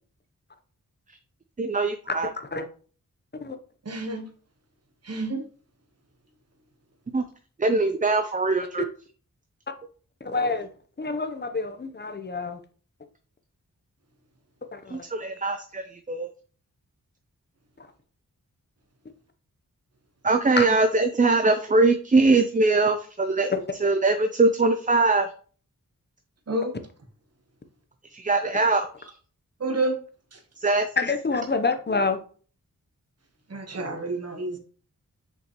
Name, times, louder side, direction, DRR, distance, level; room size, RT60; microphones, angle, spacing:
voice 1, 1.6-2.3 7.1-7.2 7.6-8.9 14.9-16.3 20.2-23.5 23.8-25.3 28.1-28.9 30.6-30.9, right 3 dB, 25° right, 0.5 m, -22 dB
voice 2, 3.8-4.3 5.0-5.4 26.5-26.8 29.6-30.0 30.3-30.4 33.5-34.6, right 2 dB, 50° right, 1.2 m, -29 dB
voice 3, 10.2-10.7 11.0-12.6 14.7-15.0 17.8-17.9 20.6-20.7 23.5-23.6 31.0-32.2, left 4 dB, 30° left, 0.8 m, -27 dB
6.4 x 5.1 x 3.0 m
wide cardioid pair, 90°, 33 cm